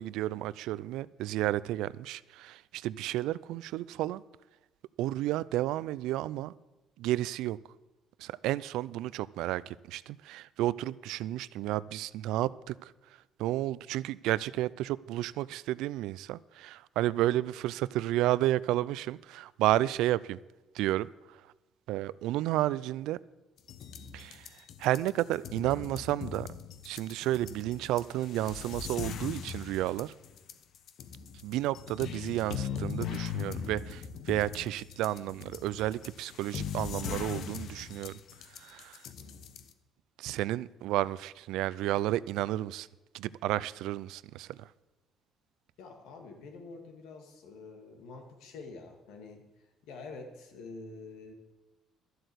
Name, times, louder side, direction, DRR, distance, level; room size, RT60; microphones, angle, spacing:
voice 1, 0.0-4.2 5.0-6.5 7.0-7.6 8.2-12.9 13.4-20.4 20.7-21.1 21.9-23.2 24.1-24.5 24.8-26.5 26.8-30.1 31.4-38.2 38.6-39.0 40.2-42.9 43.1-44.6, right 15 dB, 85° right, 0.4 m, -31 dB
sound 1, 23.6-39.7, left 7 dB, 65° left, 1.0 m, -40 dB
voice 2, 39.2-39.5 45.8-49.5 49.9-51.3, left 3 dB, 85° left, 2.4 m, -47 dB
12.0 x 7.9 x 8.1 m
cardioid pair, 120°, 0 cm